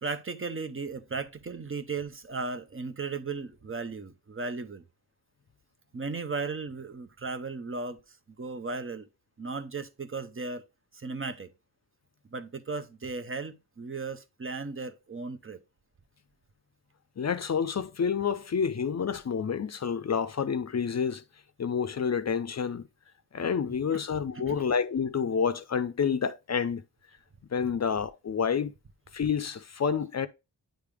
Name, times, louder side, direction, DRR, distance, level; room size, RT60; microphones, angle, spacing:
voice 1, 0.0-4.8 5.9-8.0 8.4-9.1 9.4-10.7 10.9-11.5 12.3-15.6 23.7-24.0 24.3-24.7, right 4 dB, 35° right, 0.7 m, -36 dB
voice 2, 17.2-21.2 21.6-22.9 23.3-26.8 27.5-28.7 29.1-30.3, left 6 dB, 45° left, 0.5 m, -29 dB
8.9 x 3.4 x 3.4 m
cardioid pair, 55°, 38 cm